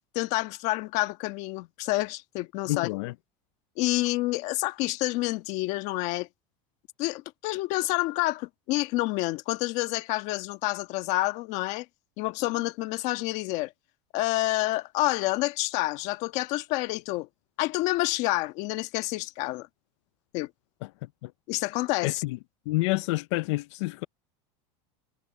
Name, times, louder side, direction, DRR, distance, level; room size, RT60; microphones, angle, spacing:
voice 1, 0.1-2.9 3.8-6.3 7.0-11.9 12.2-13.7 14.1-17.3 17.6-19.7 20.3-20.5 21.5-22.2, left 19 dB, 50° left, 1.4 m, -28 dB
voice 2, 2.7-3.1 20.8-21.3 22.0-22.4 22.7-24.1, left 21 dB, 75° left, 0.5 m, -29 dB
cardioid pair, 165°, 15 cm